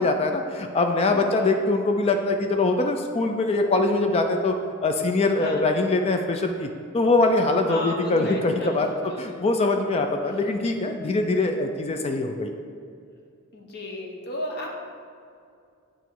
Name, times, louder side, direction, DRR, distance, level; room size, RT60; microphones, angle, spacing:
voice 1, 0.0-4.5 4.8-12.5, left 2 dB, 30° left, 5 dB, 0.3 m, -23 dB
voice 2, 1.1-1.5 5.4-5.6 7.7-8.7 9.0-9.5 13.5-14.7, equal, 50° left, 0 dB, 0.9 m, -34 dB
8.9 x 3.0 x 4.6 m, 2.4 s
head